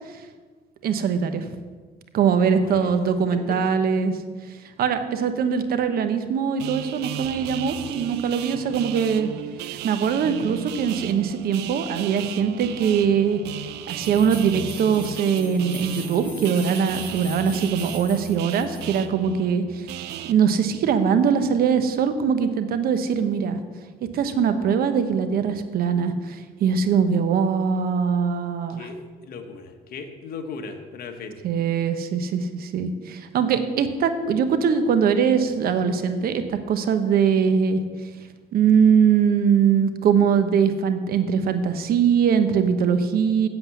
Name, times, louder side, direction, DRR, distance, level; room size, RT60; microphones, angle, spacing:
voice 1, 0.8-1.5 2.1-4.1 4.8-9.3 9.6-13.4 13.9-19.9 20.3-23.6 24.1-28.8 31.4-37.8 38.5-43.5, right 7 dB, 60° right, 9 dB, 1.1 m, -22 dB
voice 2, 2.6-2.9 3.5-3.6 8.5-8.8 17.0-17.3 28.7-29.0 29.2-31.4, left 5 dB, 60° left, 5 dB, 1.5 m, -37 dB
sound 1, 6.6-20.3, right 12 dB, 80° right, 0.6 m, -35 dB
sound 2, 14.0-19.0, left 2 dB, 10° left, 3.7 m, -42 dB
8.1 x 7.7 x 8.4 m, 1.4 s
cardioid pair, 110°, 17 cm